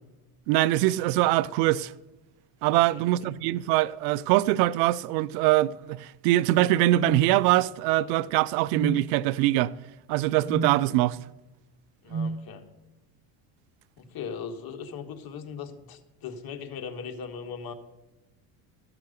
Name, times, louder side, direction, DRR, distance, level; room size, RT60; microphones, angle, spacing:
voice 1, 0.5-1.9 2.6-9.7 10.1-11.2, right 16 dB, 85° right, 0.6 m, -23 dB
sound 1, 7.0-7.3 8.7-9.0 10.5-10.8 12.1-12.4, right 4 dB, 35° right, 0.8 m, -29 dB
voice 2, 12.0-12.7 14.0-17.7, left 6 dB, 45° left, 1.4 m, -39 dB
13.0 x 5.9 x 6.4 m
supercardioid pair, 95°, 48 cm